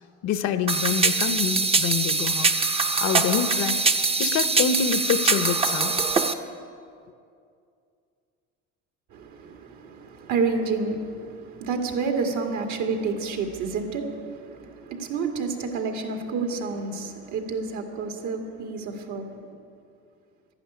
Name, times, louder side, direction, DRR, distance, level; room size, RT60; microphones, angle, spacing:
voice 1, 0.2-2.5 3.0-3.8 4.2-6.0, left 8 dB, 55° left, 12 dB, 0.9 m, -26 dB
sound 1, 0.7-6.3, right 4 dB, 20° right, 0.8 m, -23 dB
voice 2, 9.1-19.5, right 4 dB, 65° right, 4 dB, 2.3 m, -29 dB
12.0 x 11.5 x 9.9 m, 2.4 s
cardioid pair, 110°, 32 cm